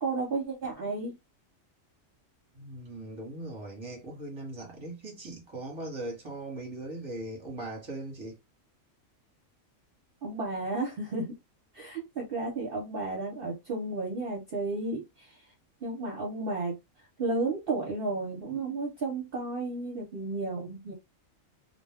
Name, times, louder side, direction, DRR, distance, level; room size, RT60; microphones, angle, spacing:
voice 1, 0.0-1.1 10.2-11.3 11.7-15.3 15.8-16.7 17.2-20.9, right 3 dB, 50° right, 0.9 m, -32 dB
voice 2, 2.5-8.4, right 2 dB, 25° right, 1.0 m, -39 dB
2.3 x 2.2 x 3.4 m
omnidirectional pair, 1.4 m